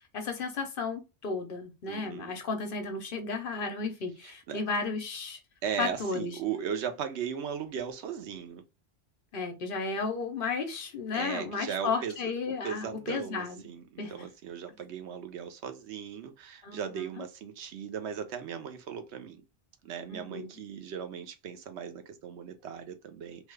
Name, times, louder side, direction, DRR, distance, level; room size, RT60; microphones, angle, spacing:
voice 1, 0.1-5.4 5.8-6.3 9.3-13.6 14.0-14.1 16.6-16.8 17.2-17.3 20.1-20.5, left 4 dB, 60° left, 0.8 m, -33 dB
voice 2, 1.9-2.4 4.2-4.6 5.6-8.6 11.1-19.4 19.8-23.5, right 8 dB, 80° right, 0.9 m, -37 dB
3.1 x 2.3 x 3.1 m
omnidirectional pair, 1.1 m